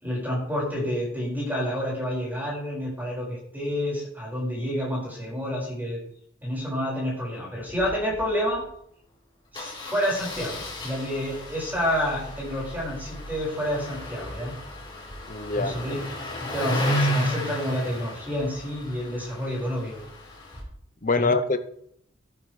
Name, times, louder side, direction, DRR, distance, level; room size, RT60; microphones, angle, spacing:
voice 1, 0.0-6.0 6.4-8.6 9.5-14.5 15.5-16.0 16.4-20.0 21.1-21.3, equal, 10° right, -4 dB, 5.2 m, -29 dB
Engine starting, 7.7-7.9 8.1-8.2 8.5-8.6 9.5-20.6, equal, 25° left, 3.8 m, -33 dB
voice 2, 15.3-15.7 21.0-21.6, left 3 dB, 40° left, 9 dB, 0.7 m, -24 dB
14.0 x 12.0 x 3.3 m, 0.71 s
head